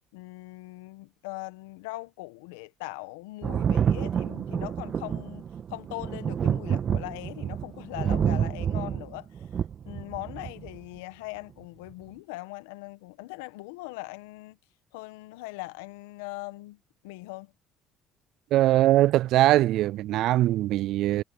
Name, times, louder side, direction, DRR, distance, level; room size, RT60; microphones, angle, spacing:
voice 1, 0.1-5.4 5.7-9.4 9.8-14.6 14.9-17.5, left 21 dB, 90° left, 1.3 m, -40 dB
Thunder, 3.4-10.8 11.9-12.0, right 8 dB, 45° right, 1.6 m, -28 dB
voice 2, 18.5-21.2, right 15 dB, 65° right, 0.3 m, -21 dB
supercardioid pair, 80°, 0 cm